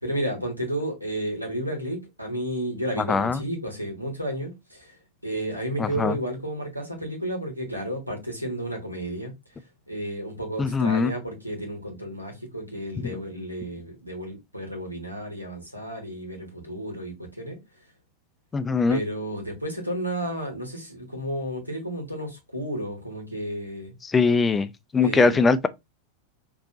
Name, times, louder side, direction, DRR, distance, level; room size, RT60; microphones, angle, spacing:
voice 1, 0.0-4.9 5.2-9.3 9.9-17.6 18.9-23.9 25.0-25.4, right 1 dB, 90° right, 1.6 m, -32 dB
voice 2, 3.1-3.4 5.8-6.2 10.6-11.1 18.5-19.0 24.1-24.7 24.9-25.7, left 4 dB, 15° left, 0.4 m, -21 dB
5.0 x 3.0 x 2.7 m
figure-of-eight pair, 90°, 0 cm